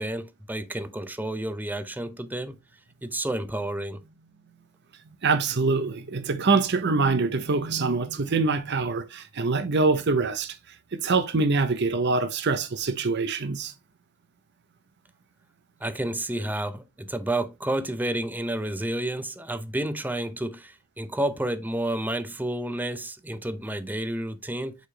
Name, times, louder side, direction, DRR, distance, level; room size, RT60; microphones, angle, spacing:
voice 1, 0.0-2.6 3.0-4.0 15.8-24.8, right 1 dB, 10° right, 0.5 m, -30 dB
voice 2, 5.2-13.7, right 4 dB, 50° right, 0.7 m, -24 dB
6.6 x 5.0 x 3.2 m
head